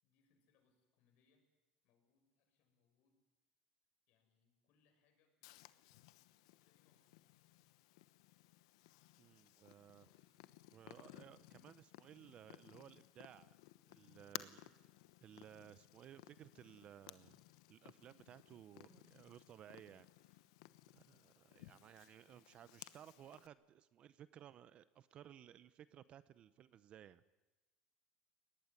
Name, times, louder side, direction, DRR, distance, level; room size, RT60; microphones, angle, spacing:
voice 1, 0.0-1.5 1.8-3.2 4.1-7.2, left 5 dB, 65° left, 4 dB, 7.0 m, -80 dB
Purr, 5.4-23.5, left 17 dB, 85° left, 1.0 m, -58 dB
voice 2, 9.2-10.4 10.7-13.6 13.8-14.9 15.2-17.4 17.7-20.4 20.9-27.2, right 10 dB, 40° right, 15 dB, 0.7 m, -59 dB
23.0 x 19.0 x 9.7 m, 1.1 s
supercardioid pair, 120°, 3 cm